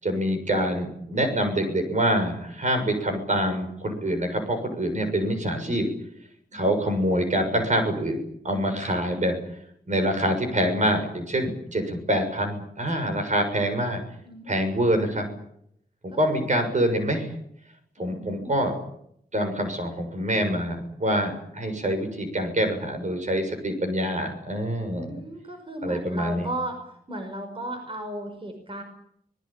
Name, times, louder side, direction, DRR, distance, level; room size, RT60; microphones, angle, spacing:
voice 1, 0.0-5.9 6.5-9.3 9.9-14.0 14.5-15.3 16.0-17.3 18.0-18.7 19.3-25.2 25.8-26.5, equal, 50° right, 6 dB, 6.8 m, -25 dB
voice 2, 14.2-14.7 16.1-16.4 18.0-18.6 24.9-26.8 27.1-28.8, right 1 dB, 35° right, 5 dB, 5.5 m, -35 dB
26.0 x 20.0 x 9.0 m, 0.74 s
wide cardioid pair, 110°, 16 cm